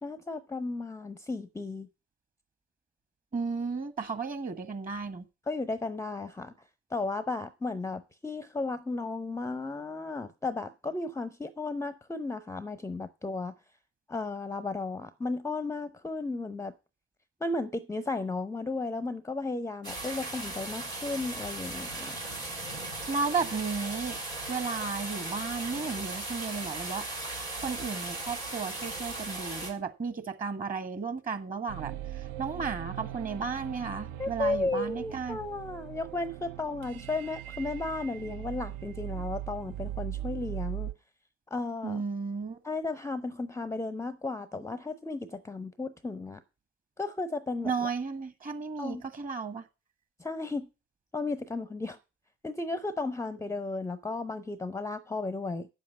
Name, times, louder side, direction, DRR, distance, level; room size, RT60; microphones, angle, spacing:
voice 1, 0.0-1.9 5.5-6.5 6.9-13.5 14.1-16.7 17.4-22.2 34.2-40.9 41.5-42.0 42.6-46.4 47.0-47.9 48.8-49.0 50.2-50.7 51.1-52.0 52.4-55.7, left 3 dB, 10° left, 0.7 m, -34 dB
voice 2, 3.3-5.2 23.1-27.0 27.5-35.4 41.8-42.6 47.6-49.6, right 4 dB, 25° right, 1.5 m, -34 dB
sound 1, 19.8-29.7, right 2 dB, 90° right, 3.2 m, -37 dB
sound 2, 31.7-40.9, right 12 dB, 55° right, 0.6 m, -40 dB
8.9 x 7.3 x 6.9 m
figure-of-eight pair, 60°, 31 cm